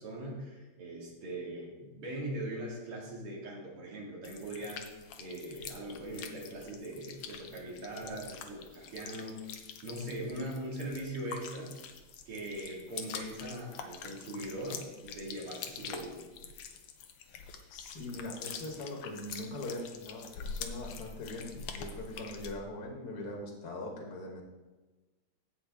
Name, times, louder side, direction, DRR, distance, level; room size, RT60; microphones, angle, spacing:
voice 1, 0.0-9.5 9.8-11.8 12.3-16.2, right 1 dB, 85° right, -4 dB, 3.1 m, -41 dB
sound 1, 4.2-22.5, left 6 dB, 90° left, 1.7 m, -45 dB
voice 2, 17.7-24.4, left 1 dB, 50° left, 0 dB, 1.8 m, -41 dB
16.0 x 5.6 x 3.5 m, 1.2 s
omnidirectional pair, 2.4 m